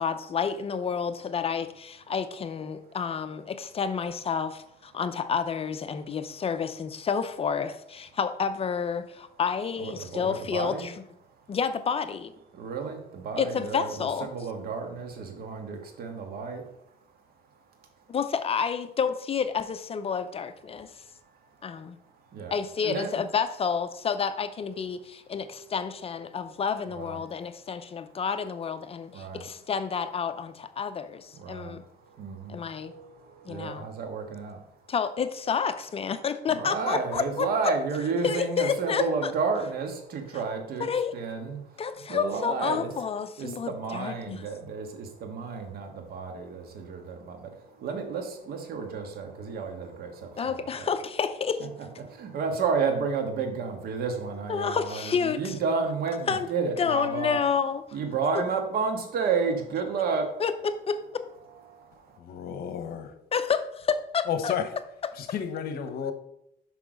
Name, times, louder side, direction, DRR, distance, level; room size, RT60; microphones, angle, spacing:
voice 1, 0.0-10.9 11.5-12.3 13.4-14.3 18.1-20.9 21.6-22.0 22.5-31.8 32.5-32.9 33.5-33.9 34.9-37.5 38.2-39.3 40.8-41.1 41.8-44.4 50.4-51.7 54.5-55.5 56.3-56.5 56.8-57.8 60.4-61.2 63.3-64.5, left 6 dB, 35° left, 11 dB, 0.6 m, -29 dB
voice 2, 9.8-10.9 11.2-11.6 12.5-18.2 20.8-23.1 26.9-27.3 29.1-29.5 31.3-34.9 36.5-40.9 41.1-42.9 43.4-50.9 52.0-57.4 57.9-60.4 61.5-62.2, right 5 dB, 65° right, 4 dB, 1.6 m, -32 dB
voice 3, 62.2-63.2 64.3-64.8 65.1-66.1, left 8 dB, 65° left, 9 dB, 1.0 m, -32 dB
6.2 x 5.7 x 5.1 m, 0.77 s
cardioid pair, 110°, 17 cm